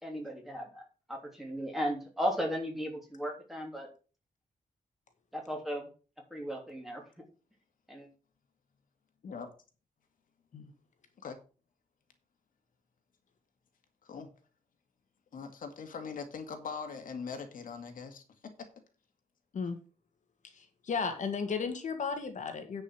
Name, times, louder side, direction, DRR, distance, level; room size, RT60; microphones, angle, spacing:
voice 1, 0.0-3.9 5.3-5.9 6.3-7.0 7.9-8.1, equal, ahead, 0 dB, 3.0 m, -36 dB
voice 2, 15.3-18.2, left 5 dB, 85° left, 5 dB, 2.0 m, -41 dB
voice 3, 20.5-22.8, left 5 dB, 65° left, 6 dB, 1.8 m, -34 dB
9.9 x 5.4 x 6.2 m, 0.35 s
wide cardioid pair, 165°, 14 cm